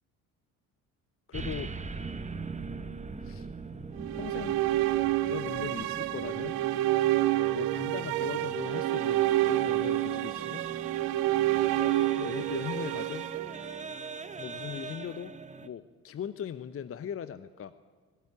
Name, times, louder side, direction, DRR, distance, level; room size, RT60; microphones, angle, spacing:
voice 1, 1.3-1.7 3.2-3.5 4.1-4.6 5.2-6.6 7.5-10.6 11.7-13.2 14.4-15.3 15.6-17.7, left 8 dB, 30° left, 13 dB, 0.9 m, -39 dB
sound 1, 1.3-15.7, right 4 dB, 15° right, 1.3 m, -42 dB
sound 2, 4.0-14.2, right 16 dB, 55° right, 0.9 m, -28 dB
20.0 x 17.5 x 9.3 m, 1.5 s
figure-of-eight pair, 50°, 43 cm